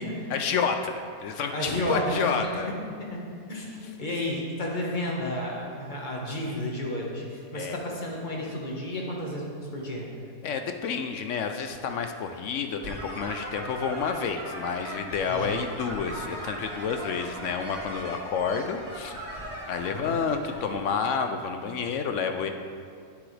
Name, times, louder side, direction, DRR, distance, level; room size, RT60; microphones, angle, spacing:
voice 1, 0.3-2.7 7.5-7.8 10.4-19.2 19.7-22.5, left 6 dB, 65° left, 6 dB, 0.8 m, -29 dB
voice 2, 1.5-2.6 3.1-3.2 3.5-7.2 7.5-9.5 9.7-10.0 15.3-15.6 19.9-20.2, left 1 dB, 30° left, -2 dB, 1.4 m, -32 dB
sound 1, 12.8-20.7, right 1 dB, 50° right, 2.4 m, -39 dB
9.7 x 9.2 x 3.3 m, 2.3 s
omnidirectional pair, 1.6 m